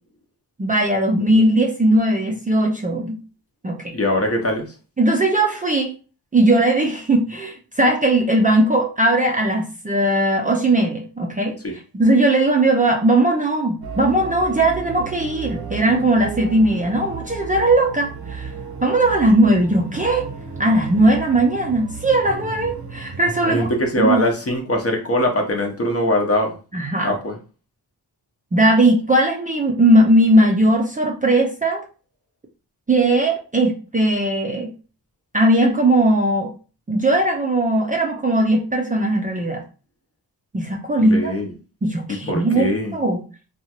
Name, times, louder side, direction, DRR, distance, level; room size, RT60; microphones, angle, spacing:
voice 1, 0.6-3.2 3.6-3.9 5.0-5.9 6.3-11.6 11.9-18.5 18.8-20.3 20.6-23.7 24.0-24.2 26.7-27.1 28.5-31.8 32.9-34.7 35.3-36.5 36.9-39.6 40.5-41.3 41.8-43.2, right 1 dB, 20° right, 0 dB, 0.4 m, -18 dB
voice 2, 3.9-4.7 11.6-11.8 23.4-26.5 27.0-27.4 41.0-41.5 42.1-42.9, left 1 dB, 35° left, 3 dB, 0.7 m, -22 dB
sound 1, 13.8-23.8, right 4 dB, 70° right, 0.7 m, -34 dB
2.8 x 2.3 x 2.8 m, 0.35 s
wide cardioid pair, 105°, 40 cm